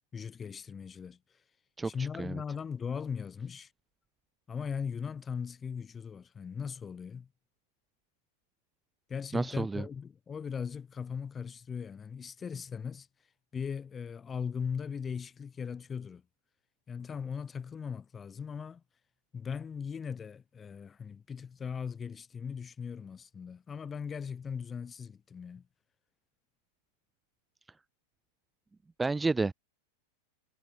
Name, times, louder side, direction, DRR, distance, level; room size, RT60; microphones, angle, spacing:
voice 1, 0.1-1.2 1.8-3.7 4.5-7.3 9.1-13.1 13.5-16.2 16.9-18.8 19.3-25.6, left 6 dB, 20° left, 4.0 m, -39 dB
voice 2, 1.8-2.4 9.3-9.8 29.0-29.5, right 3 dB, 10° right, 0.6 m, -31 dB
supercardioid pair, 135°, 0 cm